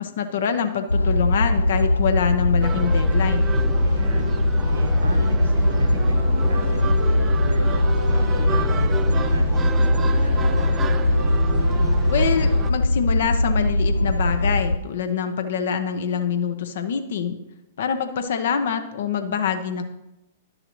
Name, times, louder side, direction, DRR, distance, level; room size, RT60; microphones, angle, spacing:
voice 1, 0.0-3.5 12.1-17.3 17.8-19.8, left 7 dB, 60° left, 8 dB, 0.7 m, -25 dB
sound 1, 0.9-14.8, left 1 dB, 85° left, 0.3 m, -20 dB
sound 2, 2.6-12.7, right 7 dB, 20° right, 0.3 m, -31 dB
voice 2, 3.8-4.3 4.7-7.7 8.1-10.7, right 2 dB, 75° right, 3 dB, 1.4 m, -35 dB
11.0 x 6.6 x 3.0 m, 0.94 s
figure-of-eight pair, 105°, 0 cm